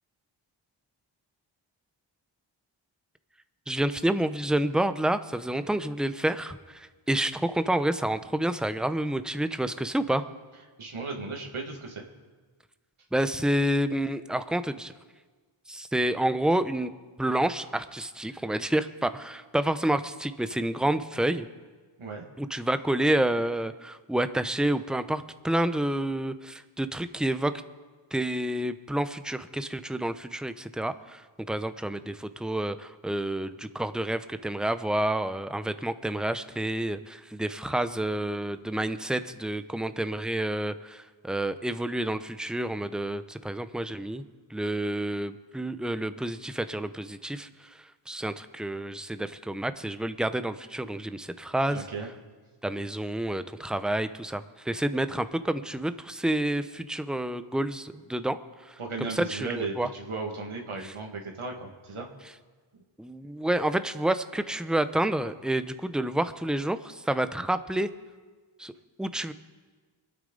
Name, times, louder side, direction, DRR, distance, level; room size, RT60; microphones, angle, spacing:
voice 1, 3.7-10.2 13.1-14.9 15.7-16.9 17.2-21.5 22.4-27.6 28.1-31.2 31.5-44.2 44.5-47.7 48.1-51.8 52.6-59.9 60.8-60.9 63.0-67.9 68.6-68.7 69.0-69.3, right 1 dB, ahead, 11 dB, 0.7 m, -29 dB
voice 2, 10.8-12.0 22.0-22.2 51.7-52.1 58.8-62.1, right 4 dB, 75° right, 1 dB, 2.0 m, -36 dB
25.5 x 9.0 x 3.9 m, 1.4 s
cardioid pair, 50°, 49 cm